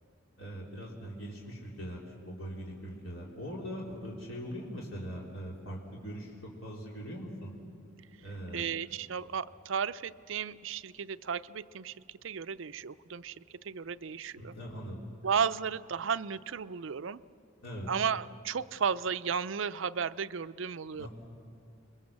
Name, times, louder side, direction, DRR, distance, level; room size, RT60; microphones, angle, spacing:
voice 1, 0.4-6.3 6.6-7.5 8.2-8.7 14.4-15.0 17.6-17.9 21.0-21.1, equal, 75° left, -3 dB, 3.6 m, -41 dB
voice 2, 8.5-12.0 12.2-14.5 15.2-17.2 17.9-21.1, right 6 dB, 65° right, 13 dB, 0.5 m, -34 dB
29.5 x 22.5 x 7.4 m, 2.4 s
head